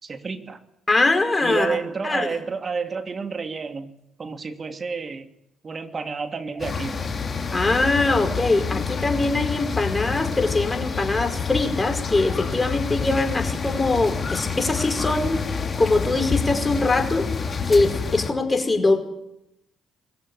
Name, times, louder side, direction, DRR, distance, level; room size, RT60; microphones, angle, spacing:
voice 1, 0.0-0.6 1.4-3.9 4.2-5.3 5.6-7.1, right 5 dB, 40° right, 7 dB, 2.7 m, -30 dB
voice 2, 0.9-1.8 2.0-2.3 7.5-15.4 15.8-19.0, left 3 dB, 25° left, 6 dB, 5.1 m, -22 dB
sound 1, 6.6-18.3, left 5 dB, 40° left, 2.7 m, -28 dB
22.5 x 14.5 x 9.9 m, 0.82 s
hypercardioid pair, 45°, 0 cm